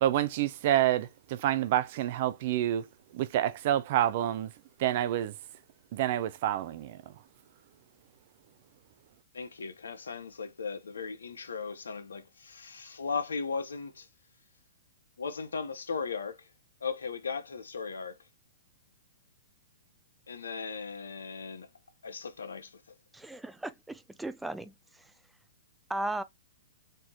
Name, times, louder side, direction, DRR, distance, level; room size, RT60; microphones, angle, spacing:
voice 1, 0.0-2.9 3.1-4.5 4.8-5.3 5.9-7.0, right 12 dB, 50° right, 0.6 m, -28 dB
voice 2, 9.3-14.1 15.2-16.5 16.8-18.2 20.3-21.7 22.0-22.8, left 5 dB, 85° left, 0.9 m, -37 dB
voice 3, 23.1-25.1 25.9-26.2, right 1 dB, 5° right, 0.4 m, -37 dB
4.4 x 2.7 x 3.0 m
hypercardioid pair, 130°, 0 cm